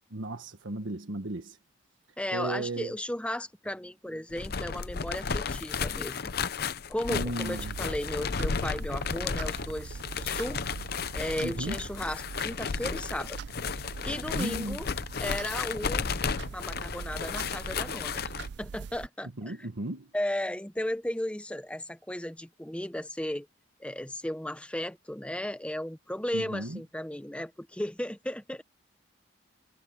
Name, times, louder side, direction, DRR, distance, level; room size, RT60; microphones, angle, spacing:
voice 1, 0.1-1.6 2.3-3.0 7.1-7.8 11.4-11.8 14.3-14.8 19.4-20.1 26.3-26.8, right 2 dB, 90° right, 1.4 m, -35 dB
voice 2, 2.2-6.5 6.9-10.6 11.1-13.4 14.0-14.9 15.2-16.1 16.5-18.3 18.6-19.6 20.1-23.5 23.8-28.6, left 1 dB, 5° left, 0.8 m, -35 dB
sound 1, 4.3-18.5, left 5 dB, 55° left, 0.6 m, -33 dB
sound 2, 7.4-19.1, right 5 dB, 60° right, 0.4 m, -42 dB
head